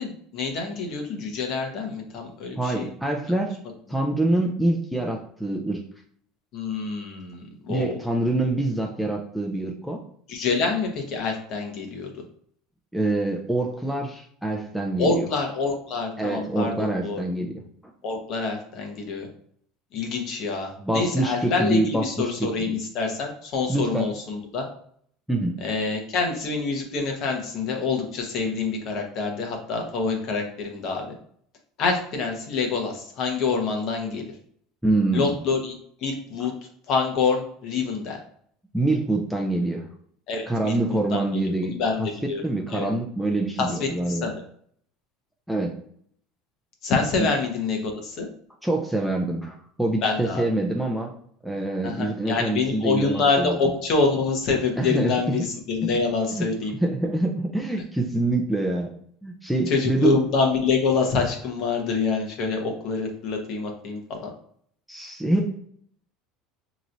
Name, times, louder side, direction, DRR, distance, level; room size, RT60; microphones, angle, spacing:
voice 1, 0.0-2.9 6.5-7.9 10.3-12.1 15.0-17.2 18.0-19.3 19.9-24.6 25.6-31.1 31.8-34.3 35.1-35.7 36.0-36.5 36.9-38.2 40.3-41.2 41.6-42.4 42.7-42.9 43.6-44.3 46.8-48.3 50.0-50.5 51.8-56.7 59.7-64.2, left 4 dB, 45° left, 2 dB, 1.0 m, -26 dB
voice 2, 2.6-3.6 3.9-5.8 7.7-10.0 12.9-15.3 16.2-17.6 20.8-22.8 23.7-24.1 25.3-25.6 34.8-35.3 38.7-39.9 40.5-42.1 42.4-44.3 45.5-45.8 47.2-47.3 48.6-51.2 51.4-53.6 54.8-55.4 56.3-56.5 56.7-58.9 59.2-60.2 64.9-65.5, right 2 dB, ahead, 0 dB, 0.4 m, -25 dB
5.4 x 3.0 x 2.6 m, 0.63 s
cardioid pair, 155°, 0 cm